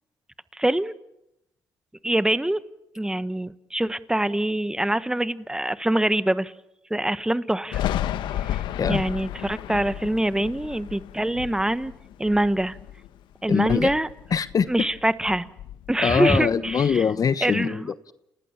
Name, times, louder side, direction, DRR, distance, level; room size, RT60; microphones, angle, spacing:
voice 1, 0.5-0.9 2.0-2.6 2.9-6.5 6.9-7.8 8.4-8.6 8.9-11.9 12.2-12.8 13.4-14.1 14.7-15.5 15.9-17.1 17.4-17.9, right 1 dB, 10° right, 15 dB, 1.3 m, -24 dB
Thunder, 7.7-13.2 13.5-15.0 15.2-17.0, left 12 dB, 75° left, 1.3 m, -33 dB
voice 2, 13.5-13.9 14.3-14.7 16.0-18.1, left 6 dB, 50° left, 15 dB, 1.1 m, -23 dB
29.5 x 19.0 x 7.2 m, 0.84 s
supercardioid pair, 60°, 8 cm